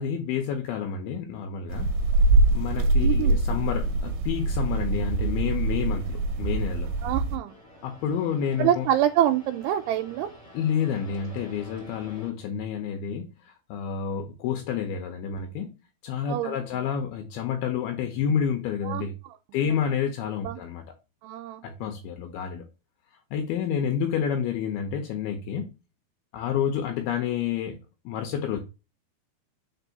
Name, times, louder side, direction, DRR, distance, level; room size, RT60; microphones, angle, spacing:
voice 1, 0.0-1.9 2.5-6.9 7.8-8.9 10.5-15.7 16.0-19.1 19.5-20.8 21.6-22.6 23.3-25.7 26.3-27.8 28.1-28.6, left 8 dB, 80° left, 2.6 m, -29 dB
sound 1, 1.7-7.4, right 2 dB, 70° right, 2.1 m, -24 dB
voice 2, 3.0-3.4 7.0-7.6 8.6-10.3 16.3-16.8 18.8-19.0 19.6-19.8 20.4-20.6 21.2-21.6, right 11 dB, 90° right, 2.7 m, -26 dB
sound 2, 7.4-12.3, left 1 dB, 25° left, 2.5 m, -49 dB
5.1 x 4.6 x 3.9 m
omnidirectional pair, 4.7 m